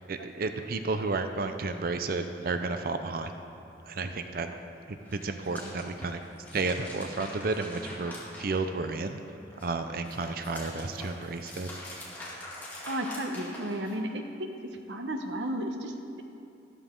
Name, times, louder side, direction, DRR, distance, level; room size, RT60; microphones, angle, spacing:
voice 1, 0.1-3.3 3.9-4.5 4.9-6.2 6.5-9.2 9.6-11.7, right 3 dB, 55° right, 8 dB, 0.6 m, -32 dB
sound 1, 5.0-9.1 9.5-14.1, left 1 dB, 10° left, 2.7 m, -44 dB
voice 2, 12.8-16.2, right 1 dB, 90° right, 4 dB, 1.0 m, -34 dB
13.0 x 12.5 x 3.8 m, 2.7 s
head